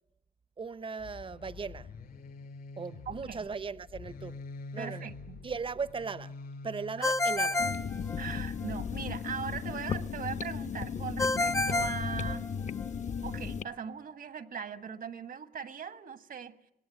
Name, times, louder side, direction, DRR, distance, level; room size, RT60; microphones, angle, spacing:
voice 1, 0.6-1.9 2.8-4.4 4.7-5.1 5.4-6.3 6.6-7.6, right 5 dB, 35° right, 0.8 m, -38 dB
sound 1, 1.0-10.5 11.2-12.3, left 4 dB, 85° left, 4.7 m, -46 dB
voice 2, 3.0-3.5 4.8-5.4 7.0-7.1 8.2-12.5 13.2-16.6, right 7 dB, 70° right, 1.5 m, -40 dB
Ringtone, 7.0-8.7 11.2-12.9, left 2 dB, 20° left, 0.8 m, -30 dB
sound 2, 7.6-13.6, left 6 dB, 55° left, 1.1 m, -36 dB
26.0 x 19.0 x 9.0 m
wide cardioid pair, 130°, 15 cm